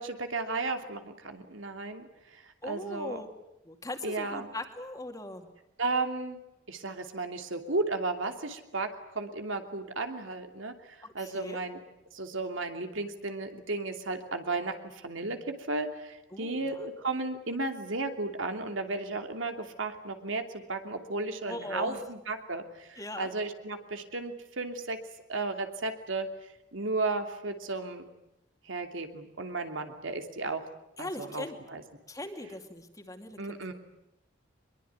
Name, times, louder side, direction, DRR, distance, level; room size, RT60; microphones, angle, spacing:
voice 1, 0.0-3.2 4.0-4.5 5.8-6.4 6.7-8.9 9.1-11.8 12.1-25.0 25.3-26.3 26.7-28.1 28.7-30.6 31.0-31.8 33.4-33.7, right 3 dB, 80° right, 5 dB, 2.9 m, -34 dB
voice 2, 2.6-3.3 3.7-5.5 11.0-11.6 16.3-16.8 21.5-22.0 23.0-23.3 31.0-31.6 32.1-33.6, left 1 dB, 15° left, 5 dB, 2.4 m, -40 dB
23.5 x 22.0 x 9.6 m, 0.87 s
head